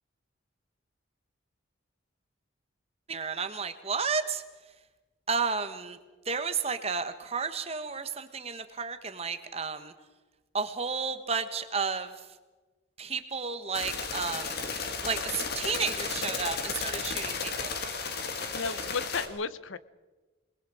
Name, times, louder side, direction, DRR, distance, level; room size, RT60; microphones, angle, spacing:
voice 1, 3.1-4.4 5.3-6.0 6.2-9.9 10.5-12.1 13.0-14.6 15.0-17.8, right 5 dB, 30° right, 9 dB, 1.3 m, -32 dB
sound 1, 13.7-19.3, left 5 dB, 50° left, 2.1 m, -34 dB
voice 2, 18.5-19.8, left 5 dB, 80° left, 16 dB, 0.8 m, -33 dB
28.0 x 20.5 x 5.0 m, 1.2 s
head